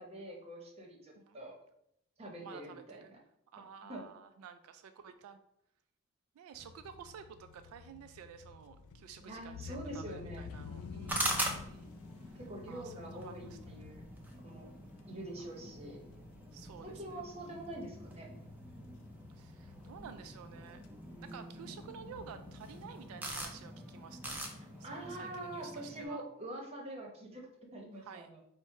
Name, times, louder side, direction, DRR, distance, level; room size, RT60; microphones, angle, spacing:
voice 1, 0.0-1.5 2.2-3.2 3.9-4.0 9.2-10.4 12.3-14.0 14.4-14.7 15.1-16.0 16.8-18.3 21.1-21.7 24.8-27.5 27.7-28.4, right 1 dB, 30° right, 0 dB, 0.8 m, -45 dB
voice 2, 2.4-3.2 3.5-5.4 6.4-11.9 12.3-12.4 12.7-13.8 16.5-17.3 19.3-20.8 21.2-24.5 24.8-26.2 28.0-28.3, right 7 dB, 85° right, 9 dB, 0.3 m, -52 dB
sound 1, 6.5-25.4, left 5 dB, 85° left, 0.4 m, -52 dB
sound 2, 11.1-26.1, right 1 dB, 10° right, 0.4 m, -43 dB
4.3 x 2.1 x 4.6 m, 0.76 s
head